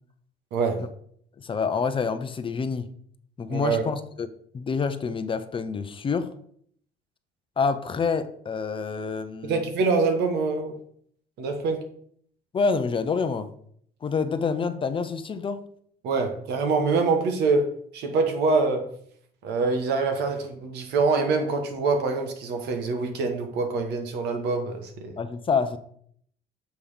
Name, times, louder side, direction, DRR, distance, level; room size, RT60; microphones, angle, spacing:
voice 1, 0.5-0.8 3.5-3.8 9.4-10.7 11.4-11.9 16.0-18.9 19.4-25.1, right 4 dB, 80° right, 5 dB, 1.3 m, -25 dB
voice 2, 1.4-2.9 3.4-4.3 4.5-6.3 7.6-9.6 12.5-13.5 14.0-15.6 25.2-25.8, left 5 dB, 30° left, 10 dB, 0.6 m, -27 dB
7.1 x 3.4 x 5.6 m, 0.64 s
cardioid pair, 110°, 17 cm